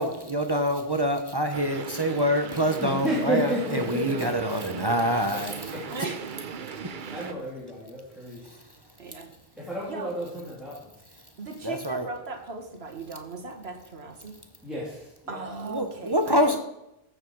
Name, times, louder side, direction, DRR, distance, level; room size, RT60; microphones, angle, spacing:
voice 1, 0.0-5.5 11.6-12.1 15.7-16.6, equal, 25° right, 6 dB, 0.9 m, -26 dB
sound 1, 1.5-7.3, right 6 dB, 55° right, 0.8 m, -38 dB
voice 2, 2.8-4.3 5.7-5.8 7.0-8.5 9.6-10.9 14.6-15.4 16.2-16.4, equal, ahead, -7 dB, 3.0 m, -31 dB
voice 3, 5.9-6.4 9.0-9.3 9.9-10.1 11.4-14.3 15.3-16.6, right 3 dB, 75° right, 2 dB, 1.9 m, -37 dB
14.5 x 7.1 x 4.7 m, 0.86 s
omnidirectional pair, 1.1 m